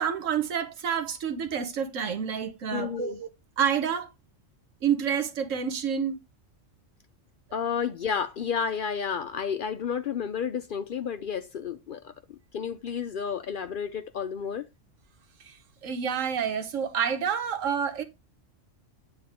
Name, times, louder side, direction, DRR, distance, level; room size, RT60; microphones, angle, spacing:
voice 1, 0.0-3.3 3.6-4.1 4.8-6.2 15.4-18.0, right 7 dB, 90° right, 1.3 m, -28 dB
voice 2, 2.7-3.2 7.5-14.7, left 7 dB, 60° left, 0.5 m, -31 dB
8.8 x 3.5 x 3.6 m
omnidirectional pair, 1.3 m